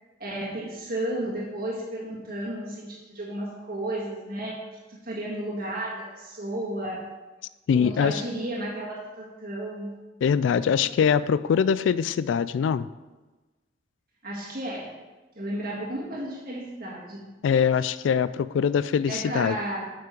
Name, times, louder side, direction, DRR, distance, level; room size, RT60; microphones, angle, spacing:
voice 1, 0.2-4.6 5.0-7.1 7.7-10.0 14.2-15.0 15.3-17.3 19.1-19.8, right 1 dB, 55° right, -4 dB, 1.7 m, -33 dB
voice 2, 7.7-8.2 10.2-12.9 17.4-19.6, left 7 dB, 90° left, 17 dB, 0.3 m, -23 dB
7.6 x 5.9 x 5.1 m, 1.2 s
head